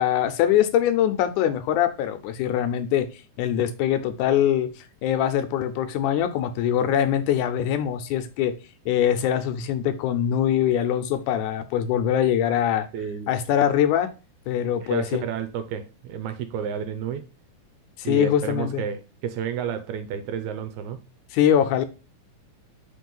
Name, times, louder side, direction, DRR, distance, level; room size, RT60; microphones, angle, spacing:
voice 1, 0.0-3.1 3.4-8.6 8.9-12.9 13.3-14.1 14.5-15.2 18.0-18.8 21.3-21.8, left 10 dB, 80° left, 2.0 m, -23 dB
voice 2, 12.9-13.3 14.8-17.3 18.0-21.0, right 8 dB, 80° right, 1.8 m, -31 dB
4.6 x 4.0 x 5.3 m
omnidirectional pair, 3.7 m